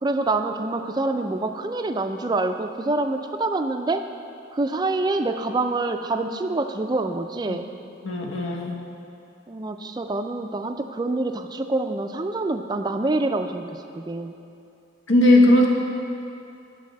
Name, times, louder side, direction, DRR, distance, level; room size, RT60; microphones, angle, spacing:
voice 1, 0.0-4.1 4.5-7.7 9.5-14.4, right 2 dB, 20° right, 7 dB, 0.3 m, -26 dB
voice 2, 8.0-8.8 15.1-15.7, left 1 dB, 90° left, 0 dB, 1.1 m, -17 dB
9.5 x 4.1 x 7.3 m, 2.6 s
head